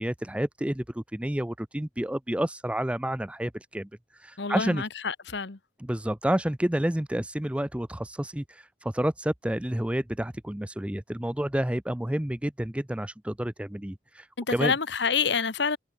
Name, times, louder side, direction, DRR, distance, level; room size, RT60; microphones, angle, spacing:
voice 1, 0.0-4.8 5.8-14.7, right 1 dB, 5° right, 0.5 m, -30 dB
voice 2, 4.4-5.6 14.4-15.8, left 5 dB, 65° left, 1.2 m, -27 dB
head